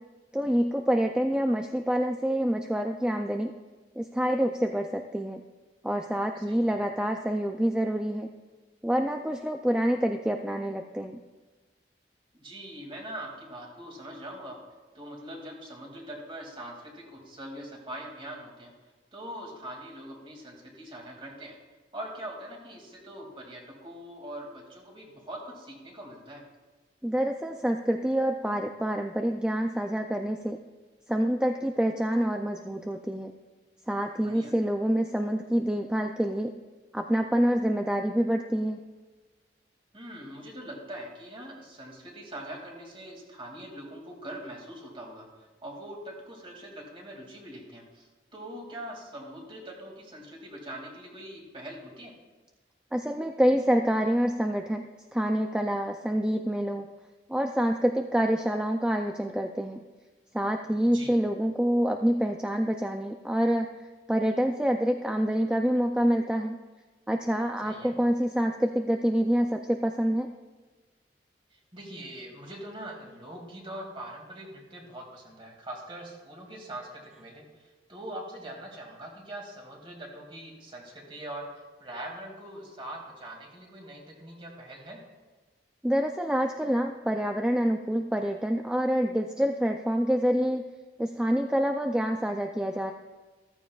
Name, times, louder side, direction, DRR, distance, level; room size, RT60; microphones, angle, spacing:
voice 1, 0.3-3.5 4.0-5.4 5.8-8.3 8.8-11.2 27.0-30.6 31.1-33.3 33.9-36.5 36.9-38.8 52.9-54.8 55.1-56.9 57.3-59.8 60.3-63.7 64.1-66.6 67.1-70.3 85.8-90.6 91.0-92.9, equal, 5° right, 4 dB, 0.4 m, -27 dB
voice 2, 6.4-6.7 12.3-14.6 14.9-18.7 19.1-21.6 21.9-26.4 34.2-34.5 39.9-48.1 48.3-52.1 60.9-61.2 67.6-68.0 71.5-85.0, right 1 dB, 30° right, 0 dB, 2.4 m, -42 dB
14.5 x 13.5 x 2.4 m, 1.3 s
head